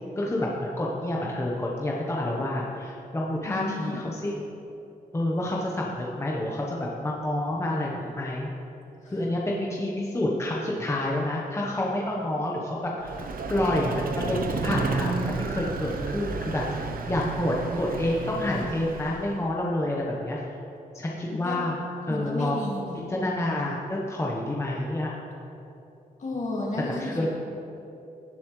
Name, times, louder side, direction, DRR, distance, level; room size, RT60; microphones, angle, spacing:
voice 1, 0.2-4.4 5.1-8.5 9.1-13.1 13.5-20.4 20.9-21.8 22.0-22.6 23.1-25.1 27.0-27.3, left 1 dB, 15° left, -3 dB, 1.0 m, -28 dB
voice 2, 3.5-4.0 9.0-9.1 21.3-21.6 22.1-23.1 26.2-27.3, left 2 dB, 50° left, -3 dB, 2.2 m, -33 dB
Vehicle, 13.0-19.4, right 4 dB, 65° right, 0.8 m, -31 dB
17.0 x 7.1 x 3.2 m, 2.9 s
wide cardioid pair, 115°, 16 cm